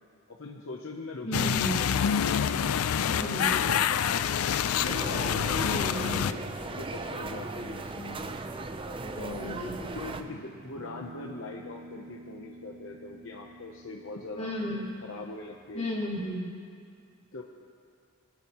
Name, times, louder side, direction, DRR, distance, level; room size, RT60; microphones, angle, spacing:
voice 1, 0.3-2.9 3.1-4.1 4.8-8.4 9.2-9.6 9.9-14.5 15.0-15.9 17.3-17.4, left 3 dB, 60° left, 0 dB, 0.7 m, -41 dB
voice 2, 1.2-1.8 3.1-3.5 5.6-6.3 9.1-10.4 14.3-14.9 15.7-16.5, equal, 30° left, -7 dB, 3.4 m, -34 dB
sound 1, 1.3-6.3, left 8 dB, 85° left, 0.4 m, -27 dB
sound 2, 4.9-10.2, right 3 dB, 25° right, 0.4 m, -37 dB
Guitar, 9.4-16.0, right 2 dB, 65° right, 0.7 m, -49 dB
23.5 x 11.5 x 3.0 m, 2.3 s
head